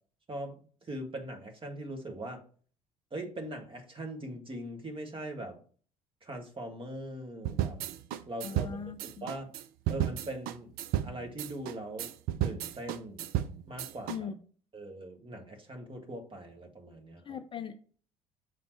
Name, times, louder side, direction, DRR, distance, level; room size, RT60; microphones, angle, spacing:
voice 1, 0.3-2.4 3.1-5.6 6.2-7.8 8.3-8.7 9.2-9.5 9.9-10.7 11.0-12.1 12.4-13.2 13.7-14.3 14.7-17.4, right 1 dB, 30° right, 1.6 m, -41 dB
sound 1, 7.5-14.2, right 11 dB, 55° right, 0.5 m, -33 dB
voice 2, 8.4-9.2 14.1-14.4 17.3-17.8, left 7 dB, 30° left, 0.5 m, -39 dB
6.7 x 4.0 x 4.5 m
figure-of-eight pair, 55°, 18 cm